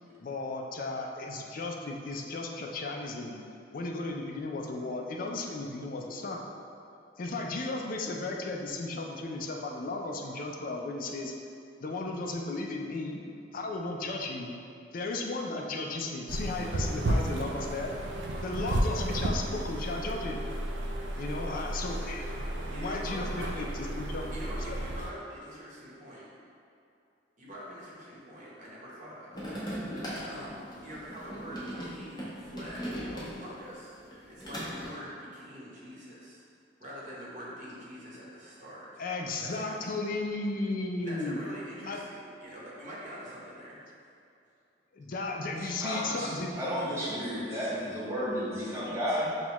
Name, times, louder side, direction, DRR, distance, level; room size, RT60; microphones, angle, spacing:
voice 1, 0.2-3.4 3.7-6.4 7.2-11.3 11.8-13.2 13.5-14.5 14.9-17.9 18.4-20.4 21.2-23.7 24.0-24.3 24.7-24.8 39.0-41.4 41.8-42.0 44.9-46.6, left 2 dB, 50° left, 1 dB, 0.4 m, -35 dB
sound 1, 16.3-25.1, right 1 dB, 85° right, 0.4 m, -33 dB
voice 2, 22.7-26.3 27.4-29.4 30.2-34.0 34.3-36.4 36.8-39.0 39.4-40.1 41.0-44.0, equal, 45° right, -6 dB, 1.0 m, -45 dB
sound 2, 29.3-33.6 34.0-34.9, equal, 25° left, 0.9 m, -38 dB
voice 3, 45.6-49.3, equal, 15° right, -8 dB, 0.9 m, -32 dB
5.9 x 2.3 x 3.0 m, 2.6 s
head